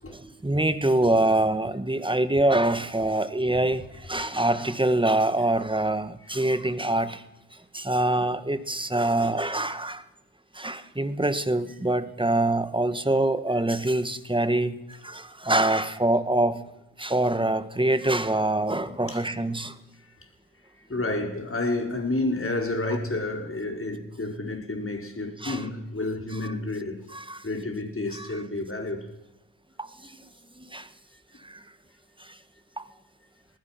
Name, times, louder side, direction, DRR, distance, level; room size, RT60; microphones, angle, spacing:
voice 1, 0.1-7.2 7.7-10.0 10.5-14.8 15.0-16.6 17.0-19.7 25.4-25.6 26.4-26.5 27.1-27.4 28.2-28.3 30.0-30.1 30.6-30.9 31.4-31.6 32.8-32.9, right 1 dB, 10° right, 1.6 m, -25 dB
voice 2, 18.7-19.2 20.9-27.1 27.4-29.1, left 2 dB, 30° left, 4.8 m, -30 dB
26.0 x 20.0 x 6.0 m
cardioid pair, 65°, 44 cm